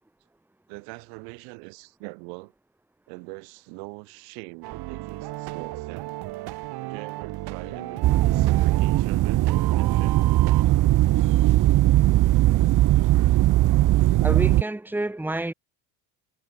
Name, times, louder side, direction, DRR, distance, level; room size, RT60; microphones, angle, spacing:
voice 1, 0.7-2.5 3.1-6.2 6.8-10.2 11.0-11.2, right 40 dB or more, 85° right, 3.3 m, -42 dB
sound 1, 4.6-10.6, right 18 dB, 65° right, 4.3 m, -35 dB
sound 2, 7.6-9.2 9.8-10.8 11.2-11.3 11.8-12.6, left 18 dB, 65° left, 5.9 m, -53 dB
sound 3, 8.0-14.6, right 16 dB, 50° right, 0.8 m, -19 dB
voice 2, 14.2-15.5, right 2 dB, 5° right, 1.9 m, -28 dB
supercardioid pair, 105°, 41 cm